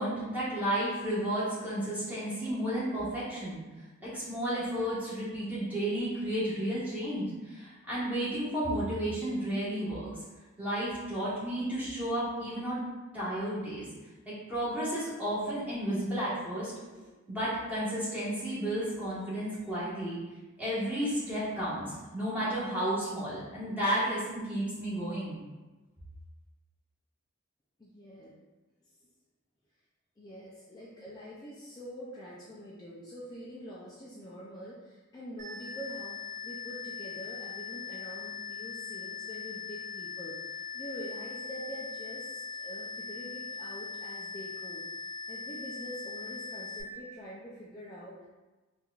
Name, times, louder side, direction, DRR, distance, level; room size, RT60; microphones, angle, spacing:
voice 1, 0.0-3.6 4.0-10.1 10.6-12.8 13.1-13.9 14.2-20.2 20.6-25.4, right 1 dB, 10° right, -10 dB, 1.3 m, -32 dB
voice 2, 27.8-28.3 28.8-29.1 30.2-48.3, equal, 20° left, -6 dB, 0.4 m, -45 dB
sound 1, 35.4-46.8, left 5 dB, 40° right, 1.0 m, -40 dB
4.4 x 2.5 x 2.3 m, 1.2 s
head